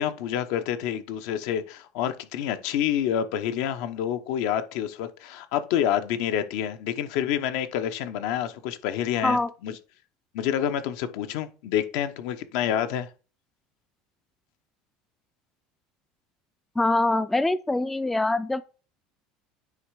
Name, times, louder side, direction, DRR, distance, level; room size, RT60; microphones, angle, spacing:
voice 1, 0.0-9.7 10.3-13.1, left 10 dB, 75° left, 0.9 m, -28 dB
voice 2, 16.8-18.6, left 2 dB, 5° left, 0.3 m, -24 dB
9.4 x 3.3 x 4.9 m
cardioid pair, 135°, 3 cm